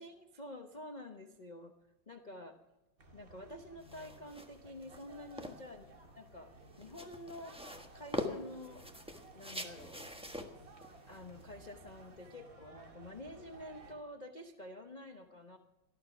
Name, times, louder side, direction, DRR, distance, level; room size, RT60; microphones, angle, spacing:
voice 1, 0.0-1.7 2.1-2.6 3.1-5.9 6.2-6.5 6.8-7.6 7.9-8.8 9.3-10.1 11.1-15.6, left 1 dB, 65° left, 5 dB, 0.4 m, -49 dB
sound 1, 3.0-13.9, right 2 dB, 45° right, 2.2 m, -57 dB
sound 2, 3.8-12.3, left 1 dB, 5° right, 1.0 m, -45 dB
18.5 x 12.5 x 5.9 m, 1.1 s
omnidirectional pair, 2.3 m